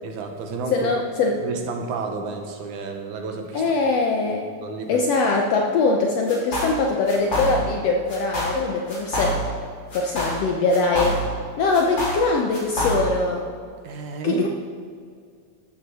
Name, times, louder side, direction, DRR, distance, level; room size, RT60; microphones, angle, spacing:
voice 1, 0.0-0.9 1.4-3.7 4.4-5.1 13.8-14.5, right 4 dB, 80° right, 4 dB, 2.6 m, -31 dB
voice 2, 0.7-1.4 3.5-4.5 4.9-9.4 9.9-11.2 11.6-13.5 14.2-14.5, left 3 dB, 70° left, 1 dB, 1.7 m, -22 dB
sound 1, 6.3-6.8 7.1-7.8 8.1-8.6 8.9-9.6 9.9-11.4 11.7-13.2, equal, 35° left, 4.8 m, -26 dB
13.5 x 13.0 x 4.2 m, 2.2 s
omnidirectional pair, 3.5 m